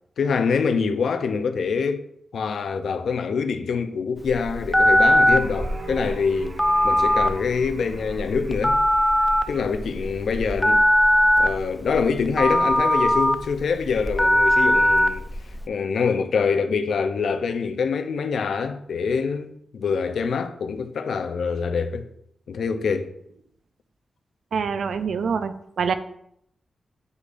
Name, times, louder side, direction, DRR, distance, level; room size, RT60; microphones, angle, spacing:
voice 1, 0.2-2.0 2.3-6.6 6.8-8.8 9.5-10.8 11.4-15.2 15.7-22.1 22.5-23.1, left 5 dB, 85° left, 0.5 m, -25 dB
Telephone, 4.2-15.6, equal, 5° left, 0.4 m, -20 dB
sound 1, 5.3-10.8, right 3 dB, 60° right, 1.2 m, -42 dB
voice 2, 24.5-25.9, right 6 dB, 80° right, 0.4 m, -25 dB
8.1 x 5.0 x 2.5 m
wide cardioid pair, 90°, 0 cm